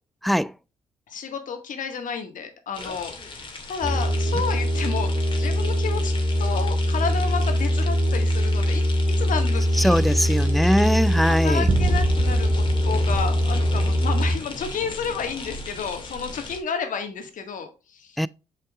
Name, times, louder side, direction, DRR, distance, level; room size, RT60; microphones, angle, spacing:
voice 1, 1.1-6.1 6.4-10.5 11.3-18.2, left 6 dB, 60° left, 1.7 m, -31 dB
sound 1, 2.7-16.6, left 2 dB, 35° left, 2.1 m, -38 dB
sound 2, 3.8-14.4, equal, 20° right, 3.3 m, -22 dB
voice 2, 9.8-11.7 18.2-18.3, equal, ahead, 0.4 m, -21 dB
sound 3, 11.7-14.3, right 3 dB, 55° right, 1.0 m, -28 dB
7.9 x 5.5 x 2.4 m
hypercardioid pair, 55°, 15 cm